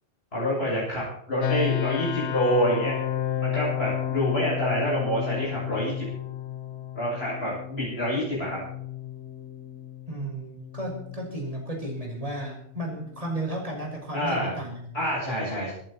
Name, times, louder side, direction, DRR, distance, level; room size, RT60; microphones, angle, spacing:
voice 1, 0.3-2.9 3.4-6.1 6.9-8.6 14.1-14.6 14.9-15.7, equal, 65° left, -6 dB, 7.8 m, -27 dB
sound 1, 1.4-14.2, left 11 dB, 85° left, 1.2 m, -33 dB
voice 2, 10.1-14.9, right 1 dB, 30° right, 0 dB, 5.8 m, -34 dB
25.5 x 12.0 x 4.3 m, 0.70 s
omnidirectional pair, 1.1 m